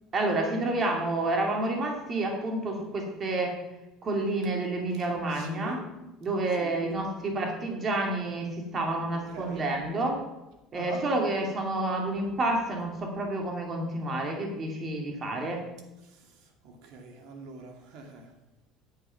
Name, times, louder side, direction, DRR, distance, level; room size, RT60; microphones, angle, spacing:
voice 1, 0.1-3.6 4.0-5.8 6.2-10.2 10.7-15.6, right 2 dB, 35° right, 2 dB, 2.6 m, -29 dB
voice 2, 5.1-5.9 6.5-7.0 9.1-9.7 10.7-11.0 16.0-18.3, right 4 dB, 70° right, 3 dB, 2.4 m, -44 dB
10.0 x 8.3 x 5.8 m, 0.99 s
cardioid pair, 120°, 0 cm